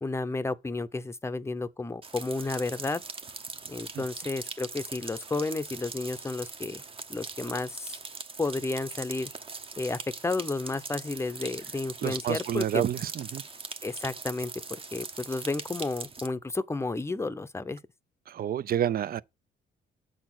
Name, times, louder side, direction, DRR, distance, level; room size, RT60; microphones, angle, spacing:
voice 1, 0.0-3.0 3.7-6.8 7.1-7.9 8.4-9.3 9.8-12.8 13.8-14.5 14.9-17.8, left 3 dB, 15° left, 0.6 m, -32 dB
sound 1, 2.0-16.3, right 4 dB, 30° right, 0.9 m, -41 dB
voice 2, 12.0-13.4 18.3-19.2, right 10 dB, 50° right, 0.5 m, -29 dB
7.7 x 4.2 x 6.0 m
cardioid pair, 90°, 20 cm